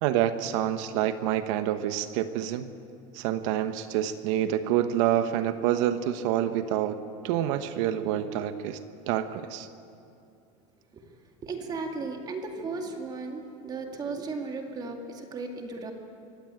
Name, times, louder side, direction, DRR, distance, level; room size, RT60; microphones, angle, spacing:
voice 1, 0.0-2.7 3.1-8.8 9.1-9.7, right 11 dB, 60° right, 10 dB, 1.1 m, -27 dB
voice 2, 11.4-15.9, right 3 dB, 20° right, 3 dB, 2.2 m, -35 dB
23.5 x 17.0 x 8.9 m, 2.5 s
supercardioid pair, 160°, 18 cm